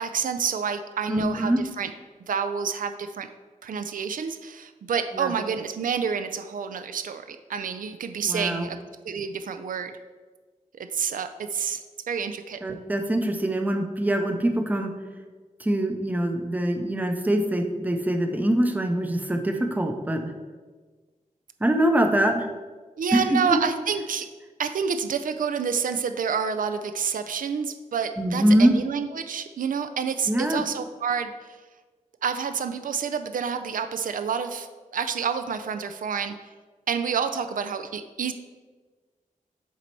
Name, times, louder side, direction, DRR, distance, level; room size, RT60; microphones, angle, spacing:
voice 1, 0.0-1.9 2.3-3.3 3.6-8.8 9.0-10.0 10.7-11.8 12.1-12.6 23.0-24.3 24.6-31.6 32.2-36.5 36.9-38.3, right 6 dB, 80° right, 9 dB, 0.4 m, -28 dB
voice 2, 1.1-1.6 5.1-5.3 8.2-8.7 12.6-14.9 15.6-20.3 21.6-22.5 23.1-23.6 28.2-28.7 30.3-30.6, right 1 dB, 10° right, 5 dB, 0.5 m, -23 dB
7.3 x 4.0 x 4.5 m, 1.4 s
wide cardioid pair, 155°, 14 cm